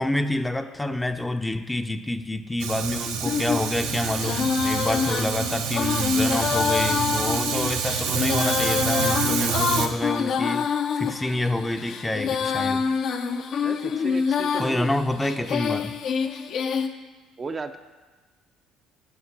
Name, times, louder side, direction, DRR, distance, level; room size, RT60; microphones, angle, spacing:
voice 1, 0.0-12.9 14.6-15.9, left 1 dB, 10° left, 8 dB, 0.6 m, -28 dB
Fire, 2.6-9.9, right 7 dB, 80° right, 0.8 m, -28 dB
Female singing, 3.2-16.9, left 6 dB, 60° left, 0.6 m, -26 dB
voice 2, 13.6-14.9 17.4-17.8, right 4 dB, 30° right, 7 dB, 0.5 m, -34 dB
8.4 x 5.7 x 6.0 m, 1.3 s
supercardioid pair, 70°, 0 cm